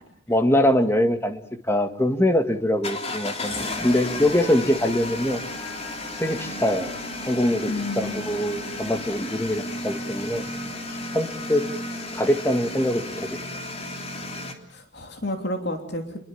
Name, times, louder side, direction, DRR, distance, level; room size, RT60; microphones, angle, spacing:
voice 1, 0.3-1.4 1.7-5.4 6.2-6.9 7.3-7.7 8.0-10.4 11.1-11.6 12.1-13.3, left 1 dB, 15° left, 8 dB, 1.9 m, -23 dB
sound 1, 2.8-14.5, left 2 dB, 35° left, 3.3 m, -33 dB
voice 2, 7.7-8.2 14.7-16.2, left 1 dB, 60° left, 5 dB, 3.1 m, -30 dB
29.5 x 22.0 x 7.1 m, 0.62 s
head